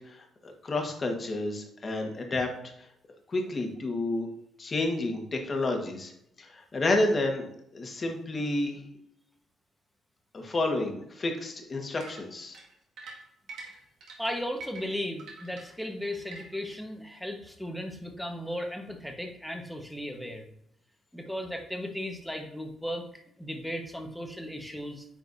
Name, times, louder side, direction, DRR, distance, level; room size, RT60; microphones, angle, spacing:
voice 1, 0.1-2.5 3.3-4.3 4.6-6.1 6.4-8.8 10.3-12.6, left 2 dB, 35° left, 3 dB, 1.5 m, -30 dB
sound 1, 12.0-16.7, right 3 dB, 75° right, 2.0 m, -46 dB
voice 2, 14.2-20.4 21.1-25.1, equal, ahead, 2 dB, 1.3 m, -36 dB
9.4 x 4.5 x 2.7 m, 0.75 s
cardioid pair, 90°, 0 cm